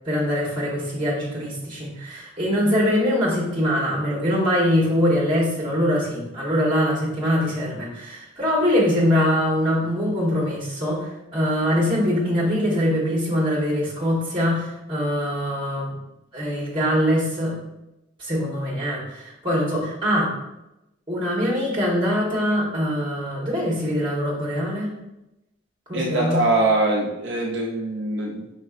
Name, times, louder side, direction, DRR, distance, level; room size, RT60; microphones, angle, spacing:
voice 1, 0.0-16.0 16.3-17.6 18.2-20.3 21.1-24.9 25.9-26.4, equal, 25° right, -4 dB, 1.3 m, -23 dB
voice 2, 25.9-28.6, right 2 dB, 65° right, -1 dB, 0.5 m, -23 dB
5.0 x 3.9 x 2.5 m, 0.93 s
head